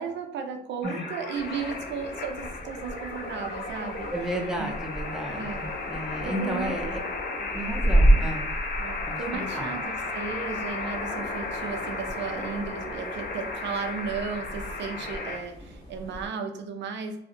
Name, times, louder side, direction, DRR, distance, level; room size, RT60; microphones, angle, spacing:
voice 1, 0.0-4.1 4.6-4.7 5.4-5.7 6.2-6.9 7.4-7.5 8.8-17.2, right 5 dB, 65° right, 5 dB, 0.4 m, -35 dB
sound 1, 0.8-15.4, left 3 dB, 55° left, 0.5 m, -34 dB
sound 2, 1.3-16.3, right 1 dB, 30° left, 1.3 m, -31 dB
voice 2, 4.1-7.0 7.5-8.5 9.1-9.8, equal, 5° right, 0 dB, 0.5 m, -33 dB
2.5 x 2.0 x 2.6 m, 0.82 s
cardioid pair, 90°, 20 cm